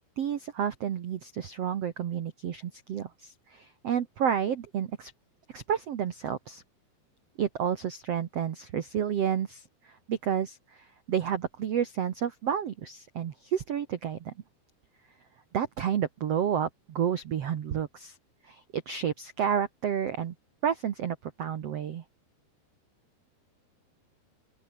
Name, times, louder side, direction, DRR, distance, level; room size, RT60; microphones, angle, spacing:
voice 1, 0.2-5.1 5.5-6.6 7.4-14.3 15.5-18.2 18.4-20.3 20.6-22.0, right 8 dB, 80° right, 1.4 m, -30 dB
open air
omnidirectional pair, 5.0 m